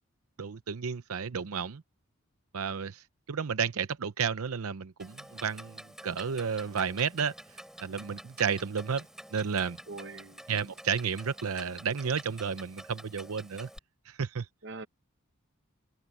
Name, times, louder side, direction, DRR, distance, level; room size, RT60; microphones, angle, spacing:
voice 1, 0.4-1.8 2.5-7.3 7.8-9.1 9.3-9.8 10.5-13.7 14.1-14.5, right 6 dB, 80° right, 0.7 m, -32 dB
Clock, 5.0-13.8, equal, ahead, 3.0 m, -49 dB
voice 2, 9.9-10.4 14.6-14.9, right 3 dB, 50° right, 1.0 m, -42 dB
head